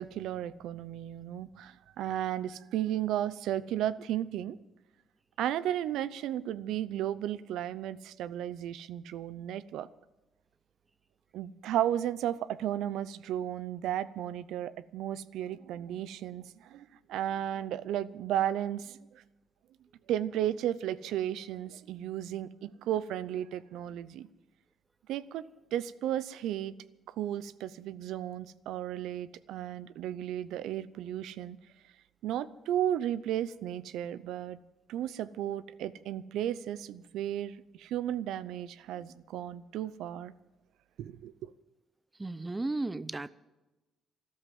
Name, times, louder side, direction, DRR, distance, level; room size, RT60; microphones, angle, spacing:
voice 1, 0.0-4.6 5.4-9.9 11.3-19.2 20.1-24.3 25.1-25.4 25.7-26.7 27.1-31.6 32.2-34.6 34.9-40.3 41.0-41.5, right 11 dB, 85° right, 0.6 m, -34 dB
voice 2, 42.2-43.3, right 2 dB, 20° right, 0.6 m, -34 dB
13.5 x 12.0 x 7.6 m
cardioid pair, 90°, 0 cm